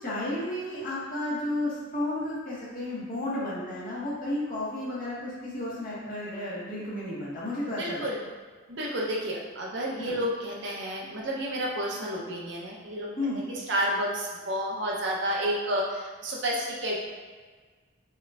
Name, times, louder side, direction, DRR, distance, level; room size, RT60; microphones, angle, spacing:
voice 1, 0.0-8.0 10.0-10.2 13.2-13.4, left 1 dB, 45° left, -9 dB, 1.4 m, -32 dB
voice 2, 7.7-8.2 8.7-17.1, equal, 65° right, -3 dB, 0.7 m, -31 dB
5.5 x 2.9 x 2.4 m, 1.4 s
head